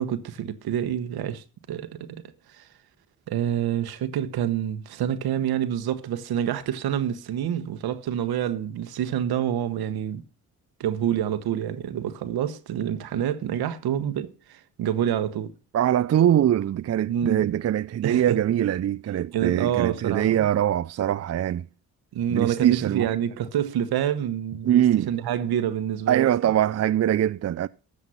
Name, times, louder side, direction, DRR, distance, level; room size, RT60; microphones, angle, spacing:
voice 1, 0.0-2.2 2.5-2.7 3.3-10.2 10.8-15.5 17.1-17.5 18.0-18.4 19.3-20.5 22.1-26.3, right 10 dB, 75° right, 1.1 m, -27 dB
voice 2, 15.7-21.7 22.3-23.1 24.6-25.1 26.1-27.7, right 11 dB, 45° right, 0.5 m, -22 dB
13.0 x 7.3 x 5.6 m
supercardioid pair, 45°, 37 cm